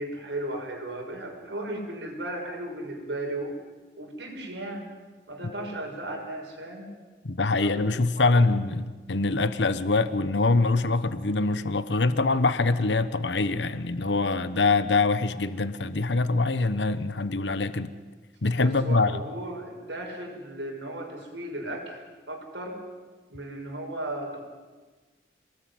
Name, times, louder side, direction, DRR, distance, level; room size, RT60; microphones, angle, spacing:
voice 1, 0.0-3.5 4.0-4.9 5.3-6.9 7.5-7.9 8.2-8.5 18.6-22.8 23.3-24.5, right 1 dB, 90° right, 3 dB, 6.0 m, -36 dB
voice 2, 7.2-17.9 18.4-19.2, left 3 dB, 90° left, 13 dB, 1.1 m, -24 dB
27.5 x 19.5 x 9.5 m, 1.3 s
head